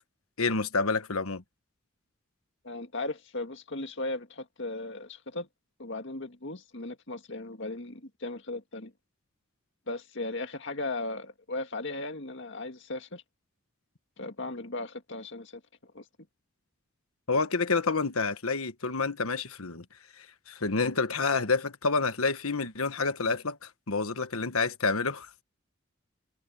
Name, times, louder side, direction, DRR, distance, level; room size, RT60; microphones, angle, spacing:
voice 1, 0.4-1.4 17.3-19.8 20.2-25.4, left 4 dB, 85° left, 1.4 m, -28 dB
voice 2, 2.6-5.5 5.8-8.9 9.9-13.2 14.2-15.5 15.9-16.0, left 2 dB, 55° left, 2.0 m, -37 dB
head